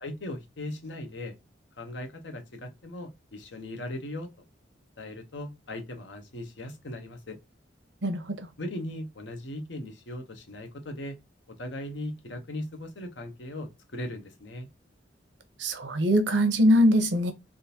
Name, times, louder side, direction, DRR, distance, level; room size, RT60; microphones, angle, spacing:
voice 1, 0.0-1.4 1.8-4.3 5.0-7.4 8.6-11.2 11.5-14.7, left 1 dB, 75° left, 0.9 m, -38 dB
voice 2, 8.0-8.5 15.6-17.3, equal, 75° right, 0.7 m, -22 dB
3.6 x 2.6 x 2.8 m
head